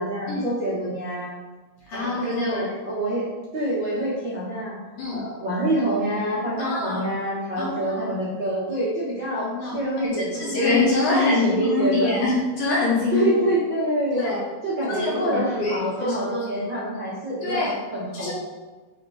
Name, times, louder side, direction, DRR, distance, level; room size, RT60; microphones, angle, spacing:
voice 1, 0.0-1.3 1.9-4.7 5.1-10.8 11.1-12.1 13.1-14.2 14.6-17.7 17.9-18.3, right 1 dB, 70° right, -10 dB, 1.1 m, -26 dB
voice 2, 1.9-2.7 5.0-5.2 6.6-7.0 7.6-8.1 9.4-10.1 10.4-13.4 14.1-14.4 14.9-16.2 17.4-17.7 18.1-18.3, left 3 dB, 65° left, -6 dB, 2.5 m, -25 dB
6.3 x 3.8 x 5.0 m, 1.3 s
omnidirectional pair, 5.0 m